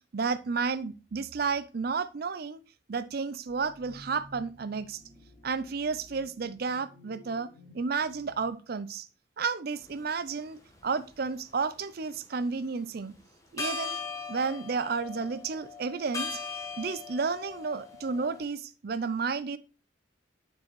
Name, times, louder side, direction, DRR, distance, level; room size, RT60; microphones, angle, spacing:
voice 1, 0.1-2.6 2.9-5.0 5.4-7.5 7.7-9.1 9.4-13.1 13.5-14.0 14.3-16.4 16.8-19.6, right 5 dB, 50° right, 0.5 m, -32 dB
sound 1, 3.5-8.5, left 1 dB, 35° left, 4.5 m, -54 dB
sound 2, 9.8-10.0 10.7-11.7 13.1-13.2 13.6-18.4, left 4 dB, 15° left, 1.2 m, -39 dB
10.5 x 4.5 x 3.0 m
head